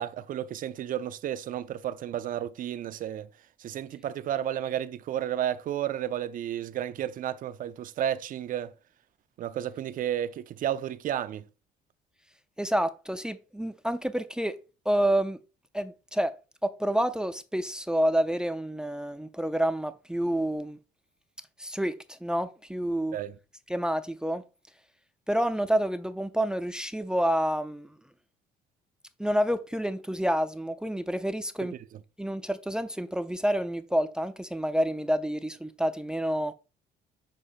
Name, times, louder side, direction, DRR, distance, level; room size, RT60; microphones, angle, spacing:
voice 1, 0.0-3.3 3.6-8.7 9.4-11.5 23.1-23.3, right 11 dB, 55° right, 0.6 m, -32 dB
voice 2, 12.6-14.5 14.9-15.4 15.7-16.3 16.6-20.8 21.6-23.2 23.7-24.4 25.3-27.9 29.2-31.7 32.2-36.5, equal, 5° right, 0.5 m, -28 dB
6.7 x 2.7 x 5.5 m
cardioid pair, 110°, 17 cm